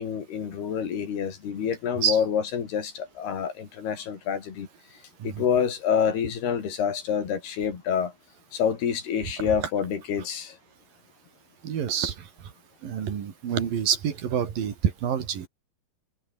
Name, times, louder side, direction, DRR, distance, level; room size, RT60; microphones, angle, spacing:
voice 1, 0.0-4.7 5.2-8.1 8.5-10.6, left 7 dB, 80° left, 5.5 m, -27 dB
voice 2, 11.6-12.3 12.8-15.5, right 8 dB, 65° right, 4.3 m, -27 dB
omnidirectional pair, 4.5 m